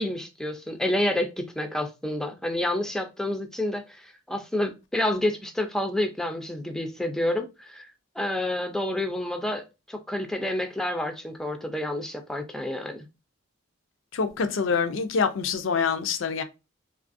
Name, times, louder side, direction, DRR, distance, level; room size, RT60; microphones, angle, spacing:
voice 1, 0.0-7.9 8.2-13.0, left 1 dB, 5° left, 0.3 m, -29 dB
voice 2, 14.1-16.4, left 5 dB, 75° left, 0.4 m, -25 dB
3.2 x 2.3 x 2.5 m
head